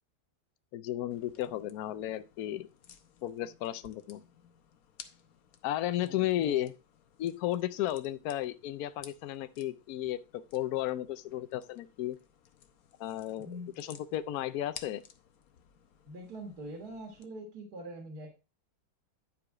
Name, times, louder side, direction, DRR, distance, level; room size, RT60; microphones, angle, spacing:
voice 1, 0.7-2.7 3.2-4.2 5.6-6.7 7.2-12.2 13.0-15.0, left 13 dB, 85° left, 0.8 m, -34 dB
sound 1, 1.1-17.3, left 8 dB, 60° left, 1.0 m, -56 dB
voice 2, 6.0-6.6 13.4-13.7 16.1-18.3, right 1 dB, 50° right, 2.2 m, -44 dB
10.5 x 4.9 x 4.7 m
omnidirectional pair, 2.3 m